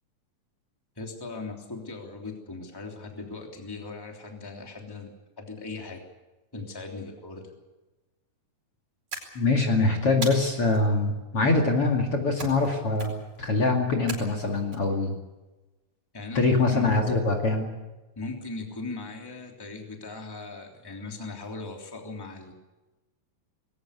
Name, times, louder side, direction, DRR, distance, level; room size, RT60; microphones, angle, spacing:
voice 1, 1.0-6.0 6.5-7.5 16.1-16.9 18.2-22.5, left 3 dB, 5° left, 2 dB, 2.8 m, -38 dB
sound 1, 9.1-9.7 10.2-10.8 12.4-12.7 13.0-13.4 14.1-14.8, right 3 dB, 55° right, 5.8 m, -38 dB
voice 2, 9.3-13.1 13.4-15.1 16.3-17.7, left 3 dB, 45° left, 1 dB, 3.0 m, -23 dB
20.5 x 19.0 x 8.3 m, 1.1 s
omnidirectional pair, 3.9 m